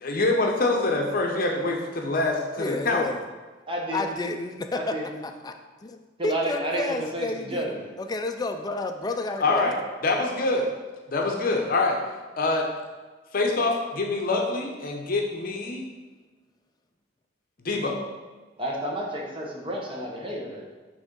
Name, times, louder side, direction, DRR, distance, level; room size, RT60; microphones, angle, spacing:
voice 1, 0.0-3.1 9.4-9.8 10.0-10.7 11.1-12.0 12.4-12.7 13.3-15.8 17.6-18.0, left 2 dB, 50° left, 2 dB, 0.7 m, -25 dB
voice 2, 2.6-3.2 3.9-4.9 5.2-5.5 5.8-6.0 6.2-9.7, left 2 dB, 20° left, 6 dB, 0.3 m, -30 dB
voice 3, 3.7-4.0 4.7-5.2 6.2-7.9 18.6-20.7, right 1 dB, 30° right, -2 dB, 1.1 m, -31 dB
6.1 x 3.5 x 5.2 m, 1.3 s
head